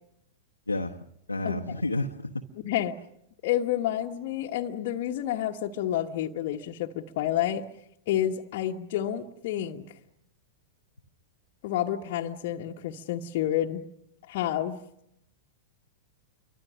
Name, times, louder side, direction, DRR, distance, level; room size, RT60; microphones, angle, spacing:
voice 1, 0.7-1.0 1.3-2.4, left 2 dB, 85° left, 0 dB, 1.1 m, -30 dB
voice 2, 2.6-3.0 3.4-7.6 8.1-10.0 11.6-13.8 14.3-14.8, left 11 dB, 45° left, 0 dB, 1.3 m, -29 dB
29.0 x 24.5 x 6.3 m, 0.81 s
figure-of-eight pair, 100°, 0 cm